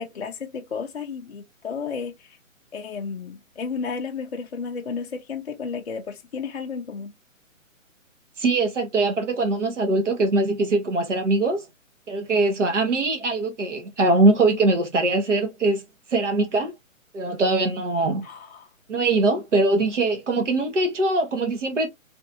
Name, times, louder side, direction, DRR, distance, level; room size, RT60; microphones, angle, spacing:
voice 1, 0.0-2.4 2.7-7.1 18.2-18.7, left 5 dB, 50° left, 0.5 m, -33 dB
voice 2, 8.4-11.6 12.1-15.8 16.1-16.7 17.1-18.2 18.9-21.9, right 2 dB, 60° right, 1.2 m, -22 dB
3.1 x 2.6 x 2.7 m
hypercardioid pair, 180°, 41 cm